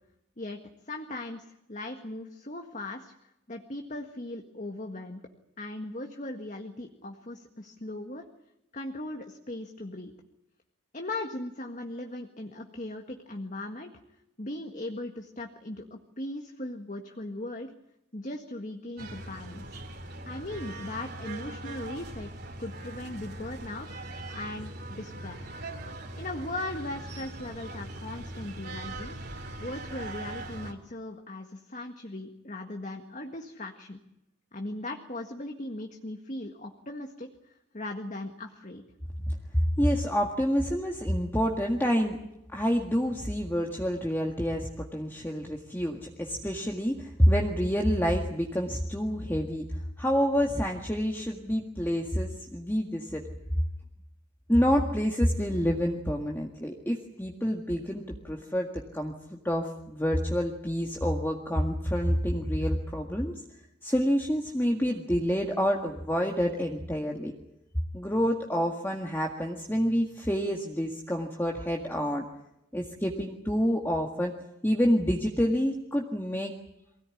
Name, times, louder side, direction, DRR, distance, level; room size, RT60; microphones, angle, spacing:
voice 1, 0.9-3.1 3.5-5.2 5.6-8.2 8.7-10.1 10.9-13.9 14.4-17.7 18.1-19.8 20.3-22.3 22.6-23.9 24.3-25.5 26.2-29.2 29.6-34.0 34.5-38.8 39.3-39.4, left 1 dB, 40° left, 4 dB, 1.8 m, -38 dB
sound 1, 19.0-30.7, right 2 dB, 50° right, 3.1 m, -41 dB
voice 2, 39.8-42.2 42.5-49.6 50.0-53.2 54.5-63.3 63.8-67.3 67.9-72.2 72.7-74.3 74.6-76.5, equal, 10° left, 1 dB, 1.8 m, -28 dB
24.0 x 17.5 x 9.9 m, 0.85 s
head